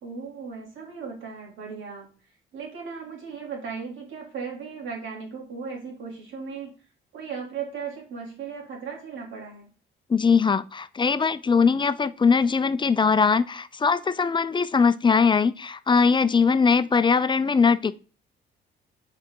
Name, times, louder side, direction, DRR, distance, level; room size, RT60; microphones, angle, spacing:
voice 1, 0.0-2.1 2.5-6.7 7.1-9.7, right 5 dB, 75° right, 2.9 m, -36 dB
voice 2, 10.1-17.9, left 5 dB, 25° left, 0.4 m, -21 dB
6.2 x 4.8 x 3.8 m
cardioid pair, 90°, 20 cm